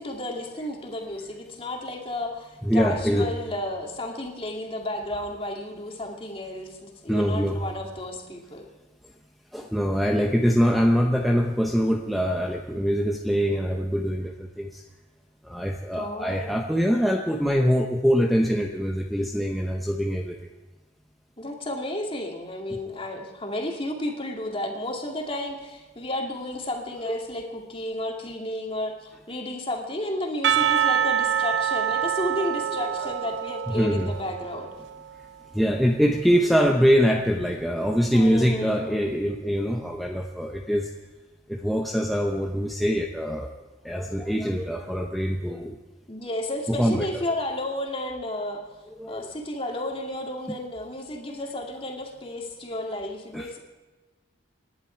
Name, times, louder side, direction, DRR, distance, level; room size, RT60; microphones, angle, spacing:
voice 1, 0.0-8.7 15.9-16.6 21.4-34.7 38.1-39.1 46.1-48.6 49.1-53.6, left 1 dB, 25° left, 1 dB, 2.4 m, -32 dB
voice 2, 2.6-3.3 7.1-7.6 9.5-14.8 15.4-20.5 27.1-27.2 33.0-33.1 33.7-34.1 35.5-40.9 41.5-43.5 43.8-45.8 46.7-47.1 49.0-49.3 53.3-53.5, equal, ahead, 1 dB, 0.8 m, -23 dB
Percussion / Church bell, 30.4-35.0, right 9 dB, 60° right, 0.5 m, -26 dB
27.5 x 11.0 x 4.6 m, 1.2 s
head